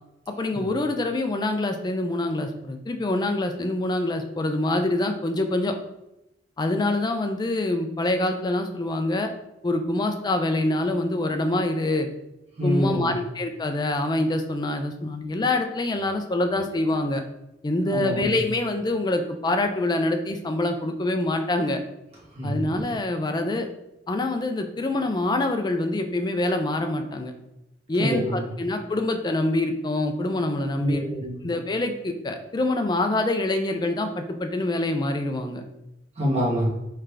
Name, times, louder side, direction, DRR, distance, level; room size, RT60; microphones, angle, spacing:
voice 1, 0.4-5.7 6.6-9.3 9.6-12.1 12.6-17.2 17.6-21.8 22.4-23.7 24.1-27.3 27.9-31.0 31.4-35.6, left 2 dB, 25° left, 6 dB, 0.4 m, -25 dB
voice 2, 12.6-13.2 17.9-18.4 22.3-22.6 28.0-28.5 30.8-31.4 36.2-36.7, equal, 35° right, -5 dB, 1.4 m, -26 dB
3.7 x 3.3 x 3.3 m, 0.88 s
head